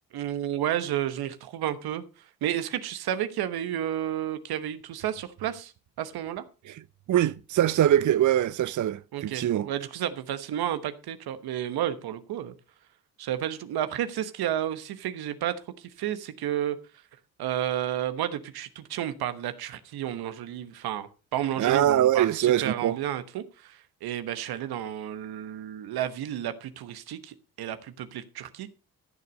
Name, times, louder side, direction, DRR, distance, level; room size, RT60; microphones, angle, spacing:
voice 1, 0.1-2.0 2.4-5.7 6.0-6.4 9.1-12.5 13.2-16.8 17.4-28.7, right 11 dB, 85° right, 1.2 m, -31 dB
voice 2, 7.1-9.7 21.6-23.0, right 11 dB, 55° right, 0.6 m, -23 dB
14.5 x 6.8 x 5.2 m
supercardioid pair, 50°, 37 cm